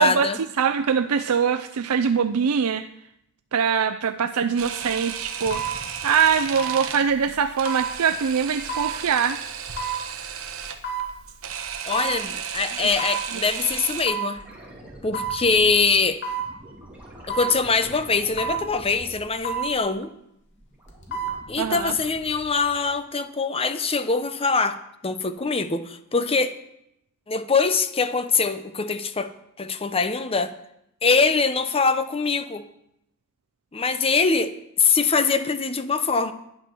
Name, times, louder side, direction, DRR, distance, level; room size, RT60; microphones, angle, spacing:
voice 1, 0.0-0.4 11.8-14.4 15.0-16.2 17.3-20.1 21.5-24.8 25.0-26.6 27.3-29.3 29.6-30.5 31.0-32.6 33.7-36.3, left 4 dB, 25° left, 11 dB, 0.8 m, -23 dB
voice 2, 0.6-2.9 3.5-5.8 6.0-9.4 12.8-12.9 21.6-21.9, right 6 dB, 80° right, 10 dB, 0.5 m, -23 dB
sound 1, 4.4-4.5 5.5-5.8 6.6-6.8 7.7-7.9 8.7-8.9 9.8-10.0 10.8-11.1 11.9-12.2 13.0-13.2 14.1-14.3 15.1-15.4 16.2-16.5 17.3-17.6 18.4-18.6 19.4-19.7 20.9-21.4 21.8-21.9, right 5 dB, 55° left, 2.7 m, -29 dB
Camera, 4.6-14.1, right 7 dB, 65° right, 1.2 m, -34 dB
sound 2, 14.2-20.0 20.4-22.9 25.4-25.5, right 1 dB, 5° right, 3.2 m, -45 dB
11.0 x 10.0 x 6.1 m, 0.79 s
head